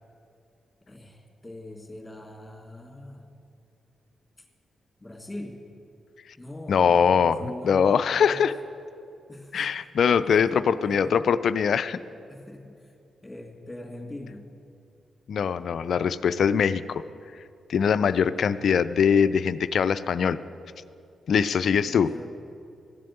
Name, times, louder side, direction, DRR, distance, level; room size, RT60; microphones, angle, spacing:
voice 1, 0.9-3.3 4.4-4.5 5.0-5.6 6.4-8.5 9.3-9.7 10.1-11.2 12.3-12.9 13.2-14.4 18.0-18.5 21.5-22.2, left 1 dB, 15° left, 1 dB, 3.0 m, -42 dB
voice 2, 6.7-8.5 9.5-12.0 15.3-17.0 17.7-20.4 21.3-22.1, left 7 dB, 65° left, 14 dB, 0.4 m, -22 dB
14.5 x 7.5 x 8.8 m, 2.5 s
hypercardioid pair, 40°, 0 cm